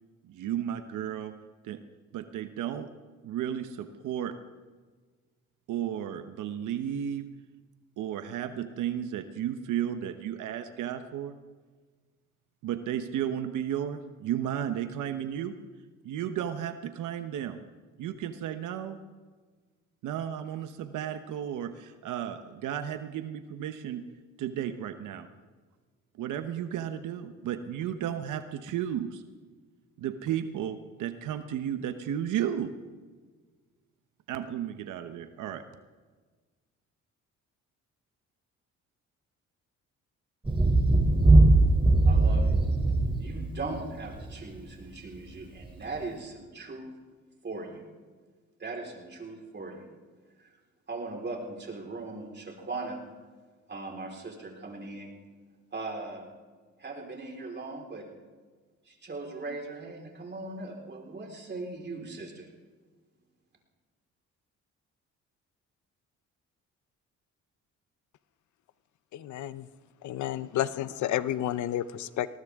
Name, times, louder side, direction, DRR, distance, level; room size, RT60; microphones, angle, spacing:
voice 1, 0.2-1.3 1.6-1.8 2.1-2.9 3.2-4.3 5.7-7.3 8.0-11.3 12.6-15.5 16.0-17.6 18.0-19.0 20.0-24.0 24.4-25.3 26.2-29.2 30.0-32.7 34.3-35.6, right 10 dB, 85° right, 9 dB, 1.0 m, -33 dB
Thunder, 40.4-44.3 45.6-45.7, right 2 dB, 15° right, 3.4 m, -21 dB
voice 2, 42.0-42.6 43.2-46.9 47.4-47.8 48.6-49.9 50.4-50.6 50.9-53.0 53.7-55.1 55.7-56.3 56.8-58.0 58.9-62.5, right 3 dB, 35° right, 1 dB, 4.4 m, -39 dB
voice 3, 69.1-69.7 70.0-72.3, left 12 dB, 75° left, 15 dB, 0.7 m, -31 dB
20.0 x 18.5 x 3.6 m, 1.4 s
cardioid pair, 90°, 30 cm